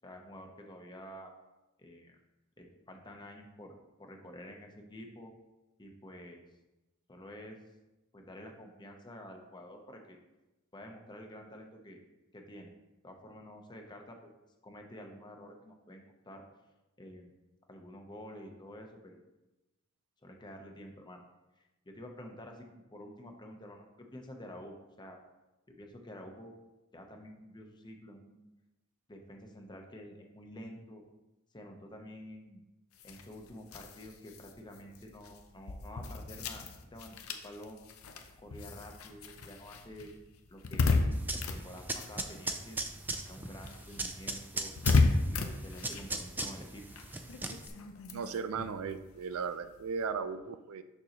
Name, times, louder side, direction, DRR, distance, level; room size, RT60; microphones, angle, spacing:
voice 1, 0.0-1.3 1.8-2.2 2.6-3.7 4.0-5.3 5.8-6.4 7.1-7.6 8.1-10.2 10.7-12.0 12.3-12.7 13.0-14.3 14.6-16.4 17.0-17.3 17.7-19.2 20.2-21.2 21.6-25.2 25.7-26.5 26.9-28.4 29.1-31.0 31.5-32.6 33.0-37.8 38.4-40.1 40.5-41.0 41.3-42.8 43.3-44.7 45.2-46.9, equal, 20° left, 3 dB, 0.7 m, -49 dB
sound 1, 32.9-42.8 43.1-50.1, left 3 dB, 85° left, 0.6 m, -34 dB
sound 2, 41.1-47.7, right 2 dB, 10° right, 0.3 m, -39 dB
voice 2, 48.1-50.8, right 5 dB, 90° right, 11 dB, 0.4 m, -36 dB
6.6 x 6.1 x 2.9 m, 1.0 s
head